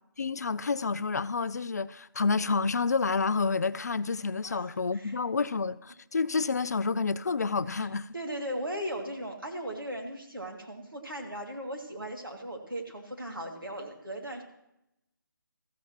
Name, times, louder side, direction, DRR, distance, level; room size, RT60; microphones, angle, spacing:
voice 1, 0.2-8.1, left 4 dB, 50° left, 0.4 m, -29 dB
voice 2, 4.4-5.2 7.7-7.9 8.1-14.4, right 1 dB, 90° right, 2.5 m, -38 dB
14.0 x 13.5 x 3.0 m
figure-of-eight pair, 150°, 11 cm